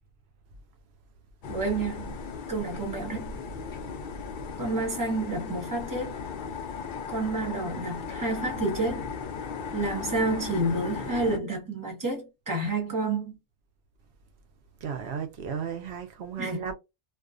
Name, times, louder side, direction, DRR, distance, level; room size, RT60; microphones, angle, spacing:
sound 1, 1.4-11.4, left 5 dB, 60° left, 0.6 m, -36 dB
voice 1, 1.5-2.2 2.5-3.3 4.6-6.2 7.1-9.1 9.7-13.4 16.4-16.6, right 2 dB, 20° right, 1.1 m, -29 dB
voice 2, 14.8-16.7, right 7 dB, 90° right, 0.9 m, -34 dB
2.4 x 2.4 x 2.4 m
omnidirectional pair, 1.1 m